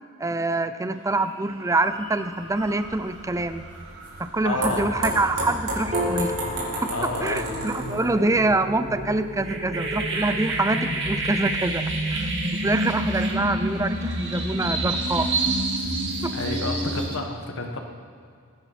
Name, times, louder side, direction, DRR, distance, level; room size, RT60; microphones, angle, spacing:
voice 1, 0.2-3.6 4.2-6.4 6.8-12.3 12.6-15.3 16.2-16.3, right 2 dB, 15° right, 11 dB, 0.5 m, -25 dB
sound 1, 1.1-1.3 1.7-17.2, right 1 dB, 55° right, 2.4 m, -30 dB
sound 2, 2.4-8.4, right 1 dB, 90° right, 3.9 m, -32 dB
voice 2, 4.4-4.9 6.9-7.8 16.3-17.8, left 2 dB, 60° left, 3 dB, 1.5 m, -30 dB
Piano, 5.9-12.5, equal, 30° right, 1.3 m, -36 dB
21.5 x 10.0 x 4.3 m, 2.2 s
head